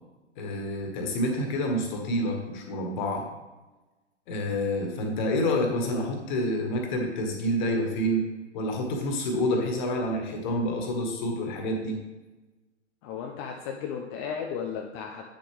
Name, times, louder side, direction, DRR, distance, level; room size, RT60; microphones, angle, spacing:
voice 1, 0.4-3.2 4.3-8.2 8.5-12.0, left 1 dB, 40° left, 2 dB, 1.8 m, -28 dB
voice 2, 13.0-15.3, left 7 dB, 20° left, 2 dB, 0.5 m, -35 dB
9.3 x 6.9 x 3.4 m, 1.2 s
figure-of-eight pair, 115°, 36 cm